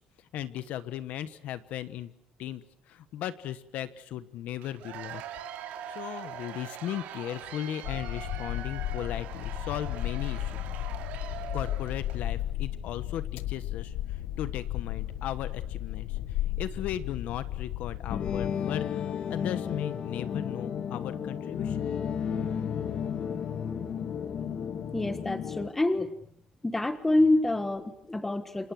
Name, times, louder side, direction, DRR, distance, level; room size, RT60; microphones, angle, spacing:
voice 1, 0.3-2.1 2.4-5.2 5.9-10.5 11.5-16.2 16.6-18.8 19.3-21.8, left 11 dB, 60° left, 14 dB, 1.2 m, -37 dB
Cheering / Applause / Crowd, 4.6-12.3, right 10 dB, 75° right, 3.5 m, -42 dB
sound 1, 7.8-18.5, left 13 dB, 85° left, 1.2 m, -34 dB
sound 2, 18.1-25.7, left 7 dB, 40° left, 1.5 m, -33 dB
voice 2, 24.9-26.2 26.6-28.7, left 2 dB, 10° left, 11 dB, 1.5 m, -27 dB
29.0 x 26.0 x 6.3 m, 0.62 s
cardioid pair, 175°, 3 cm